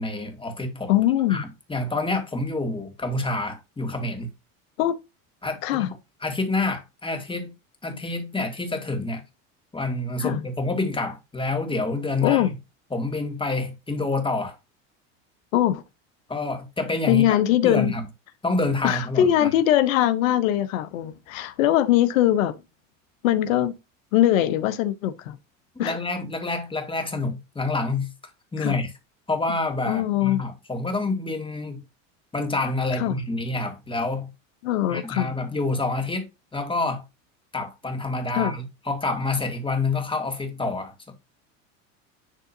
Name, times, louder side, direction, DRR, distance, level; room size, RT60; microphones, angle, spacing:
voice 1, 0.0-1.0 1.3-4.3 5.4-7.5 7.8-9.2 9.7-12.5 12.9-14.6 16.3-17.3 17.6-18.0 18.4-19.5 25.8-28.1 28.5-28.9 29.3-31.8 32.3-34.3 34.9-36.3 36.5-37.0 37.5-40.9, left 2 dB, 15° left, 2.1 m, -27 dB
voice 2, 0.9-1.4 4.8-5.0 5.6-5.9 10.2-10.4 12.2-12.5 15.5-15.8 17.1-17.9 18.8-22.6 23.2-23.7 24.1-25.4 25.8-25.9 28.6-28.7 29.9-30.4 33.0-33.2 34.6-35.3 38.3-38.5, left 12 dB, 80° left, 1.0 m, -21 dB
10.5 x 3.7 x 2.7 m
hypercardioid pair, 95°, 39 cm